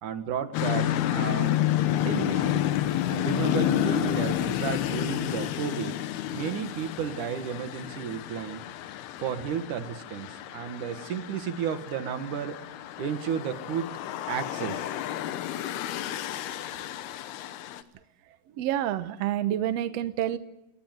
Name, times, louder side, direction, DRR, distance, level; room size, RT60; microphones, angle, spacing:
voice 1, 0.0-1.6 2.0-2.7 3.1-6.0 6.3-8.6 9.2-12.6 13.0-13.9 14.3-14.9, right 8 dB, 60° right, 8 dB, 2.9 m, -33 dB
sound 1, 0.5-17.8, left 12 dB, 85° left, 3.1 m, -30 dB
voice 2, 18.6-20.4, right 12 dB, 90° right, 11 dB, 1.4 m, -28 dB
29.0 x 18.0 x 7.9 m, 0.96 s
omnidirectional pair, 4.4 m